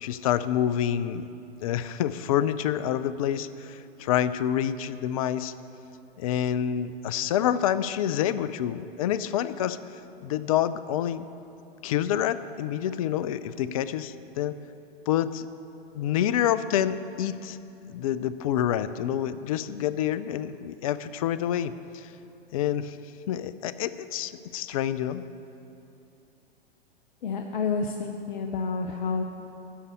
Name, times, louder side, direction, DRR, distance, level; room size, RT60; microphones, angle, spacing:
voice 1, 0.0-1.3 1.6-5.5 6.2-9.8 10.2-11.3 11.8-14.6 15.1-15.5 15.9-17.6 17.9-22.1 22.5-23.0 23.3-25.3, left 10 dB, 35° left, 14 dB, 0.4 m, -27 dB
voice 2, 27.2-29.2, left 4 dB, 50° left, 4 dB, 0.8 m, -29 dB
13.0 x 5.4 x 8.5 m, 2.9 s
figure-of-eight pair, 110°, 31 cm